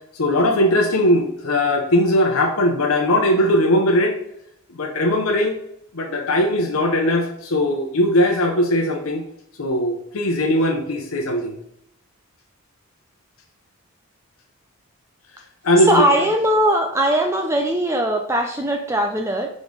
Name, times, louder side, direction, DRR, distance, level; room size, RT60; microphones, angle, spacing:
voice 1, 0.1-4.2 4.7-5.5 5.9-9.2 9.6-11.6 15.6-16.3, left 1 dB, 80° left, 2 dB, 0.8 m, -19 dB
voice 2, 15.9-19.5, right 1 dB, 15° right, 3 dB, 0.4 m, -20 dB
5.3 x 5.0 x 3.8 m, 0.75 s
head